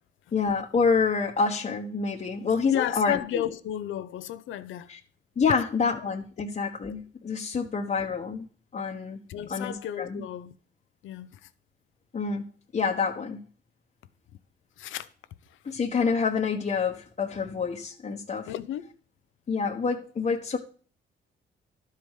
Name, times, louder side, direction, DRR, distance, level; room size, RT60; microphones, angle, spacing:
voice 1, 0.3-3.4 4.9-5.0 5.4-8.5 8.7-9.2 9.5-10.2 12.1-12.4 12.7-13.4 15.6-18.5 19.5-20.6, left 5 dB, 35° left, 1.3 m, -27 dB
voice 2, 2.7-4.9 9.3-10.5 11.0-11.5 14.8-15.1 15.5-15.8 18.5-18.9, left 11 dB, 80° left, 0.9 m, -33 dB
12.0 x 5.0 x 7.4 m
cardioid pair, 90°, 20 cm